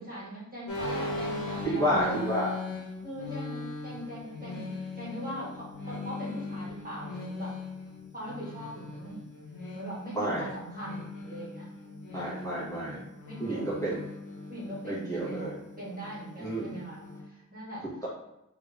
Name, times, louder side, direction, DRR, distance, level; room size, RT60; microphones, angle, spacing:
voice 1, 0.0-2.1 3.0-7.5 8.1-9.2 9.7-11.7 12.1-12.4 13.2-13.9 14.5-17.8, right 1 dB, 25° right, -8 dB, 1.5 m, -41 dB
sound 1, 0.7-17.2, left 3 dB, 65° left, 1.0 m, -39 dB
voice 2, 1.6-2.5 10.1-10.5 12.1-13.0 13.4-14.0 14.8-15.6 16.4-16.7, right 1 dB, 10° left, -9 dB, 1.4 m, -30 dB
3.4 x 2.6 x 3.3 m, 0.88 s
wide cardioid pair, 70°, 33 cm